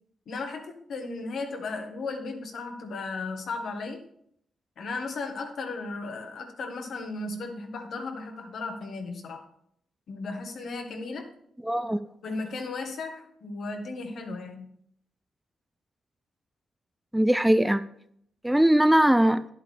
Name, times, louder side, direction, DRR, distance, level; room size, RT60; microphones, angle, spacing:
voice 1, 0.3-4.0 4.8-9.4 10.1-11.3 12.2-14.7, left 3 dB, 70° left, 4 dB, 1.6 m, -35 dB
voice 2, 11.6-12.0 17.1-17.8 18.4-19.4, right 1 dB, 5° right, 12 dB, 0.4 m, -20 dB
10.5 x 8.3 x 3.4 m, 0.69 s
cardioid pair, 70°, 0 cm